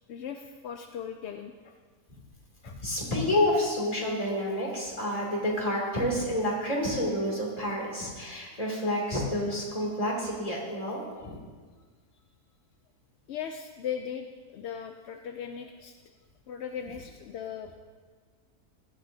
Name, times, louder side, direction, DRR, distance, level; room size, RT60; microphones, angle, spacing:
voice 1, 0.1-1.7 2.6-2.8 13.3-14.3 14.5-15.9 16.5-17.7, left 8 dB, 65° left, 5 dB, 0.7 m, -38 dB
voice 2, 2.6-11.3, left 1 dB, 25° left, -3 dB, 2.7 m, -29 dB
16.5 x 12.0 x 2.7 m, 1.5 s
omnidirectional pair, 1.6 m